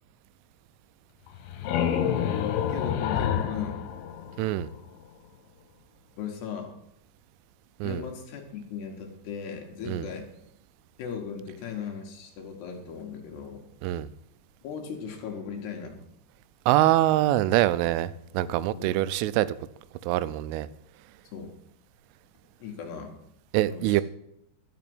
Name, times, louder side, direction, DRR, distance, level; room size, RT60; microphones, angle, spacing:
sound 1, 1.3-4.9, left 9 dB, 85° left, 3.4 m, -28 dB
voice 1, 2.7-3.8 6.2-6.8 7.8-10.3 11.0-13.7 14.6-16.0 18.6-18.9 21.3-21.5 22.6-23.1 23.7-24.0, left 7 dB, 65° left, 2 dB, 3.1 m, -37 dB
voice 2, 4.4-4.7 7.8-8.0 9.9-10.1 13.8-14.1 16.7-19.5 20.0-20.7 23.5-24.0, right 14 dB, 85° right, 16 dB, 3.0 m, -24 dB
12.0 x 5.9 x 7.7 m, 0.79 s
omnidirectional pair, 5.5 m